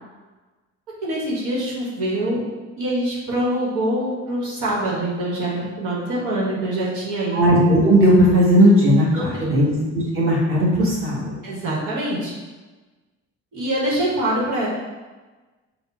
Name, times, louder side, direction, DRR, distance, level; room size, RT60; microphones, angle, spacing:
voice 1, 1.0-2.4 2.8-7.4 9.1-9.6 11.4-12.3 13.5-14.7, right 1 dB, 80° right, -5 dB, 1.2 m, -24 dB
voice 2, 7.3-11.3, equal, 45° right, -5 dB, 1.3 m, -16 dB
4.9 x 2.0 x 4.2 m, 1.3 s
cardioid pair, 90°, 30 cm